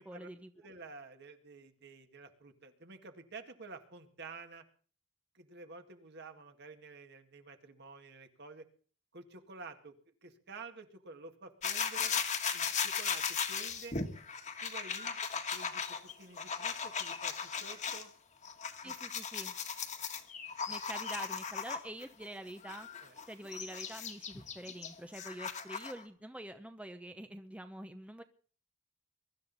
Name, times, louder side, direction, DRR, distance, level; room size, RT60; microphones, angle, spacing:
voice 1, 0.0-0.5 18.8-19.5 20.7-22.9 23.3-28.2, right 1 dB, 5° right, 8 dB, 0.7 m, -46 dB
voice 2, 0.6-4.6 5.3-8.7 9.1-9.9 10.2-12.1 12.5-14.0 14.6-18.1 18.8-18.9 20.7-20.8 23.0-23.2, right 3 dB, 55° right, 6 dB, 1.9 m, -51 dB
sound 1, 11.6-18.0 18.4-22.0 22.6-26.0, left 6 dB, 35° left, 1.6 m, -37 dB
23.0 x 12.5 x 4.1 m, 0.43 s
head